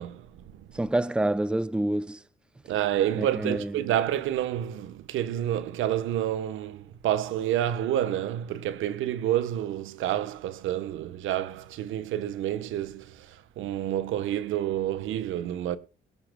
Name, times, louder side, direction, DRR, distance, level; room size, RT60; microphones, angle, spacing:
voice 1, 0.0-0.9 2.7-15.8, right 11 dB, 85° right, 1.2 m, -29 dB
voice 2, 0.7-2.2 3.2-3.7, right 1 dB, 5° right, 0.6 m, -27 dB
22.0 x 11.0 x 2.3 m
cardioid pair, 90°, 20 cm